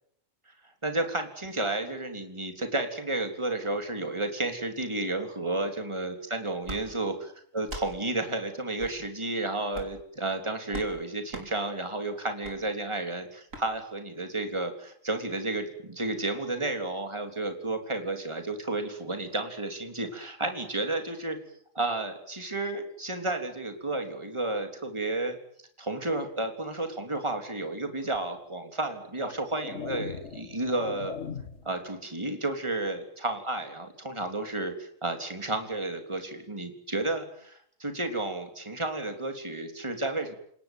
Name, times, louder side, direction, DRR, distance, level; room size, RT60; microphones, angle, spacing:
voice 1, 0.8-21.4 21.8-25.4 25.8-31.1 31.6-40.4, right 2 dB, 20° right, 5 dB, 3.6 m, -32 dB
sound 1, 6.6-6.8 7.6-7.9 8.8-9.0 9.7-10.0 10.7-10.9 11.3-11.5 12.4-12.6 13.5-13.7, right 1 dB, 75° right, 5.1 m, -39 dB
sound 2, 28.1-28.3 29.0-31.8, left 6 dB, 60° left, 1.7 m, -40 dB
29.5 x 18.0 x 9.3 m, 0.69 s
omnidirectional pair, 1.4 m